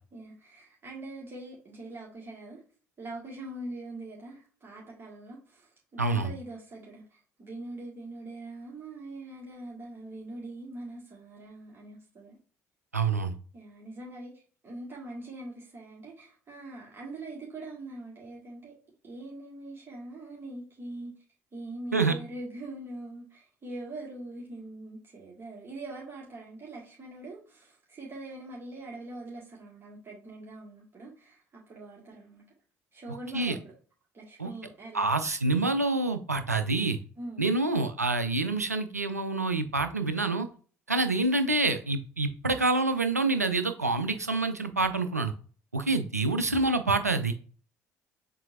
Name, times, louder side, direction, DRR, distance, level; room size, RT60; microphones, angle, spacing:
voice 1, 0.1-2.6 3.0-12.4 13.5-18.7 19.0-21.2 21.5-32.5 32.9-33.7 34.1-35.0 37.2-37.6, right 2 dB, 30° right, 1.8 m, -43 dB
voice 2, 6.0-6.3 12.9-13.3 21.9-22.1 33.3-33.6 34.4-34.5 34.9-37.0 37.4-40.5 40.9-45.3 45.7-47.3, right 3 dB, 90° right, 0.4 m, -27 dB
7.2 x 2.7 x 2.5 m
figure-of-eight pair, 50°, 8 cm